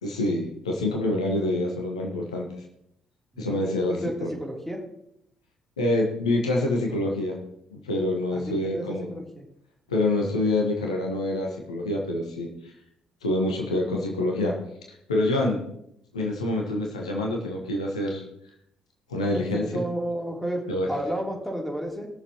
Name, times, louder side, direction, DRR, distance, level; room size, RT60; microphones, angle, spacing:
voice 1, 0.0-2.5 3.4-4.3 5.8-7.4 7.7-9.1 9.9-12.7 13.2-14.6 15.1-15.6 16.1-18.2 19.1-19.8 20.7-20.9, left 1 dB, 80° left, 0 dB, 1.3 m, -26 dB
voice 2, 3.3-4.8 8.3-9.4 19.3-22.1, right 1 dB, 5° left, 0 dB, 3.1 m, -32 dB
20.0 x 6.9 x 2.9 m, 0.75 s
figure-of-eight pair, 45°, 3 cm